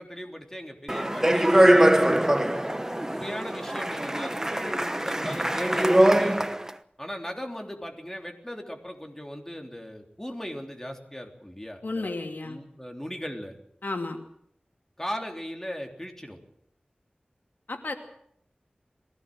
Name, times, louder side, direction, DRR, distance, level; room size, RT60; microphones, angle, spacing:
voice 1, 0.0-2.3 3.0-6.5 7.0-12.2 12.4-13.5 15.0-16.4, equal, 15° left, 3 dB, 3.5 m, -38 dB
Speech, 0.9-6.7, right 1 dB, 15° right, 1.1 m, -22 dB
voice 2, 11.8-12.6 13.8-14.2 17.7-17.9, left 2 dB, 85° left, 4 dB, 2.5 m, -32 dB
22.0 x 17.0 x 7.8 m, 0.71 s
wide cardioid pair, 60°, 3 cm